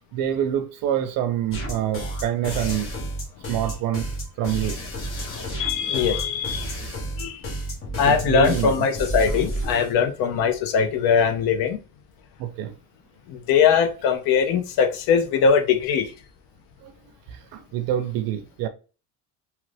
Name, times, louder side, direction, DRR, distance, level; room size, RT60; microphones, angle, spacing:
voice 1, 0.1-3.0 3.5-4.1 4.4-4.8 8.1-8.8 12.4-12.7 16.8-16.9 17.3-18.7, right 11 dB, 60° right, 0.6 m, -26 dB
sound 1, 1.5-9.9, right 1 dB, 35° left, 1.2 m, -31 dB
voice 2, 5.2-6.7 7.2-7.4 8.0-11.8 13.3-16.1, left 6 dB, 70° left, 0.7 m, -21 dB
3.0 x 2.4 x 3.3 m
cardioid pair, 120°, 39 cm